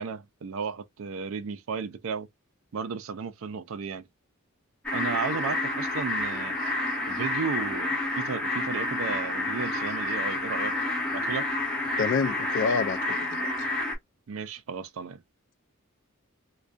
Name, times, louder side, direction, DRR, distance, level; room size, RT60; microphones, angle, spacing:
voice 1, 0.0-2.3 2.7-4.1 4.9-6.6 7.1-10.7 11.1-11.5 14.3-15.2, right 5 dB, 65° right, 0.4 m, -34 dB
sound 1, 4.8-13.9, left 2 dB, 5° left, 0.9 m, -29 dB
voice 2, 12.0-13.7, left 5 dB, 60° left, 0.3 m, -28 dB
2.2 x 2.2 x 2.5 m
head